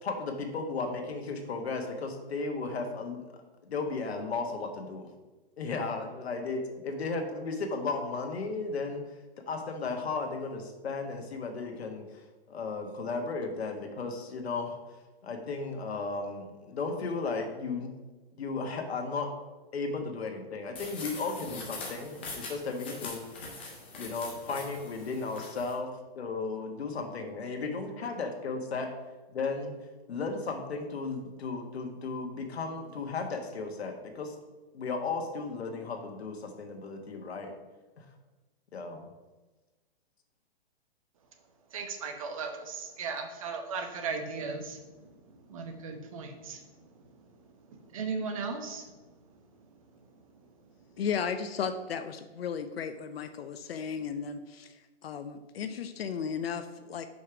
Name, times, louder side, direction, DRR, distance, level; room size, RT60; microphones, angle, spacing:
voice 1, 0.0-5.1 5.6-9.0 9.5-12.2 12.5-14.8 15.2-17.9 18.4-19.3 19.7-23.2 24.0-25.9 26.1-28.9 29.3-29.8 30.1-34.3 34.7-37.5 38.0-38.1 38.7-39.1, left 4 dB, 90° left, 4 dB, 1.4 m, -35 dB
sound 1, 20.7-25.7, left 3 dB, 10° left, 0.4 m, -43 dB
voice 2, 41.7-44.8 45.5-46.6 47.9-48.8, right 4 dB, 35° right, 5 dB, 0.9 m, -36 dB
voice 3, 51.0-54.7 55.0-57.1, left 7 dB, 75° left, 9 dB, 0.7 m, -35 dB
5.4 x 5.0 x 5.8 m, 1.2 s
hypercardioid pair, 170°, 31 cm